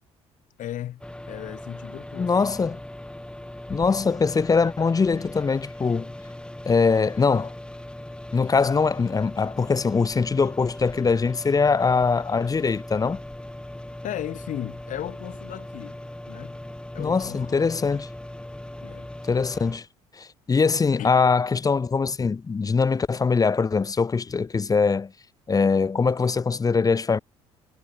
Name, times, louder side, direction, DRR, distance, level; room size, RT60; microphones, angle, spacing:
voice 1, 0.6-2.3 14.0-16.0 16.3-16.6 16.9-17.9 18.8-19.1 21.0-21.2, left 12 dB, 60° left, 4.5 m, -36 dB
sound 1, 1.0-19.8, left 1 dB, 5° left, 2.5 m, -39 dB
voice 2, 2.2-2.8 3.7-6.1 6.6-7.5 8.3-13.2 17.0-18.1 19.2-19.9 20.1-25.1 25.5-27.2, left 5 dB, 25° left, 0.7 m, -22 dB
hypercardioid pair, 60°, 14 cm